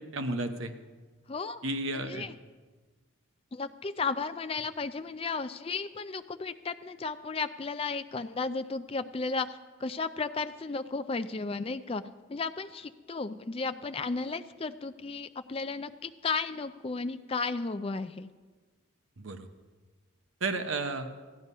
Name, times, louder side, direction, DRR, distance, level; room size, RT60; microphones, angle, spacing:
voice 1, 0.1-0.7 1.6-2.2 19.2-19.5 20.4-21.1, right 2 dB, 65° right, 8 dB, 0.9 m, -32 dB
voice 2, 1.3-1.6 1.9-2.4 3.5-12.0 12.3-18.3, left 4 dB, 25° left, 11 dB, 0.4 m, -34 dB
14.5 x 9.7 x 5.4 m, 1.4 s
head